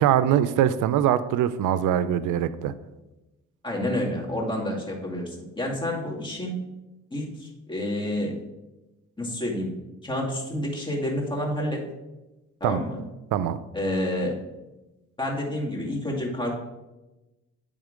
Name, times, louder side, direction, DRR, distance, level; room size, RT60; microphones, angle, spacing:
voice 1, 0.0-2.7 12.6-12.8 13.3-13.6, right 10 dB, 85° right, 14 dB, 0.5 m, -22 dB
voice 2, 3.6-6.6 7.1-8.4 9.2-9.7 10.0-11.8 12.6-13.0 13.7-14.4 15.2-16.5, left 1 dB, 15° left, -3 dB, 2.1 m, -29 dB
9.1 x 3.6 x 5.0 m, 1.0 s
cardioid pair, 90°, 30 cm